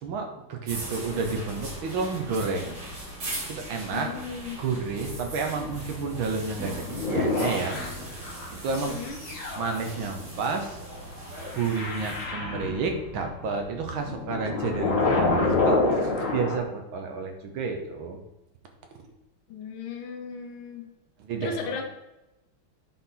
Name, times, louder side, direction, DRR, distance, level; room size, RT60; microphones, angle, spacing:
voice 1, 0.0-2.8 3.5-4.1 4.6-7.8 8.5-9.0 9.6-10.8 11.5-18.2 21.2-21.8, right 4 dB, 70° right, 4 dB, 1.6 m, -31 dB
sound 1, 0.7-12.3, right 1 dB, 50° right, 2.5 m, -39 dB
voice 2, 3.9-4.6 8.9-9.2 19.5-20.9 21.4-21.8, left 5 dB, 75° left, 1 dB, 1.7 m, -36 dB
sound 2, 6.7-8.5 9.1-16.6, left 3 dB, 45° left, 1.4 m, -28 dB
9.5 x 4.4 x 3.8 m, 0.94 s
omnidirectional pair, 2.4 m